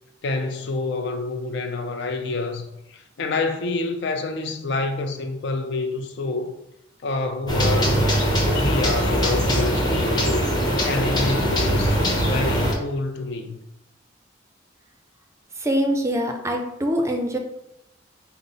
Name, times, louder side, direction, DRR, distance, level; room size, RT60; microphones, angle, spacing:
voice 1, 0.2-2.7 3.2-6.5 7.0-8.0 8.4-10.4 10.8-13.6, left 3 dB, 60° left, 0.5 m, -27 dB
sound 1, 7.5-12.7, equal, 20° left, 0.9 m, -21 dB
voice 2, 15.6-17.4, equal, 15° right, 0.4 m, -23 dB
5.5 x 2.0 x 3.9 m
head